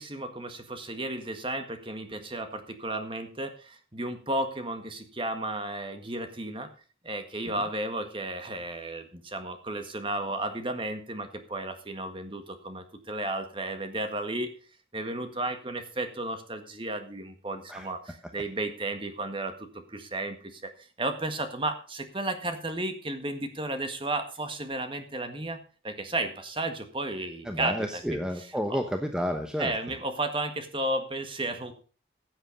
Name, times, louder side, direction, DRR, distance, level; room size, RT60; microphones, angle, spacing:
voice 1, 0.0-6.7 7.0-14.5 14.9-20.7 21.0-25.6 25.8-27.8 28.1-28.2 28.7-28.8 29.6-31.7, right 2 dB, 25° right, 7 dB, 1.7 m, -33 dB
voice 2, 27.4-29.9, equal, 5° right, 5 dB, 1.0 m, -31 dB
15.5 x 7.9 x 5.4 m, 0.37 s
head